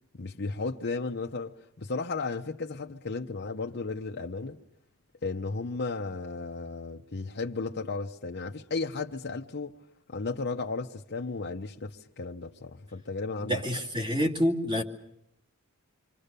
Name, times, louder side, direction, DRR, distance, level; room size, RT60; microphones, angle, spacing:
voice 1, 0.1-4.6 5.2-9.7 10.1-13.6, left 3 dB, 50° left, 0.9 m, -34 dB
voice 2, 13.4-14.8, equal, 25° right, 2.6 m, -27 dB
28.0 x 24.5 x 6.8 m
head